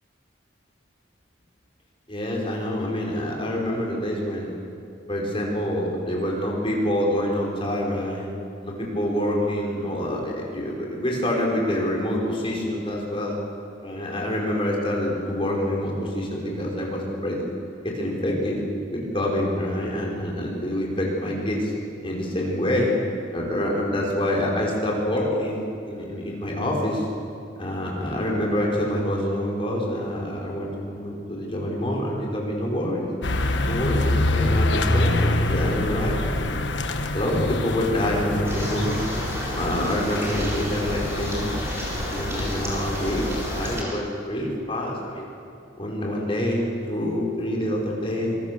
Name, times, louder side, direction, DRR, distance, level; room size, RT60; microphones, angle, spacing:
voice 1, 2.1-4.5 5.1-8.3 8.6-13.4 13.8-17.5 17.8-18.6 18.9-21.7 22.0-22.9 23.3-27.0 27.6-33.1 33.6-36.6 37.1-39.0 39.5-41.5 42.1-43.2 43.5-45.2 45.8-48.4, left 1 dB, 30° left, -2 dB, 5.2 m, -26 dB
sound 1, 33.2-43.8, left 2 dB, 65° left, 1.3 m, -26 dB
sound 2, 38.4-43.9, equal, 15° right, 4.3 m, -33 dB
25.5 x 24.0 x 6.9 m, 2.5 s
head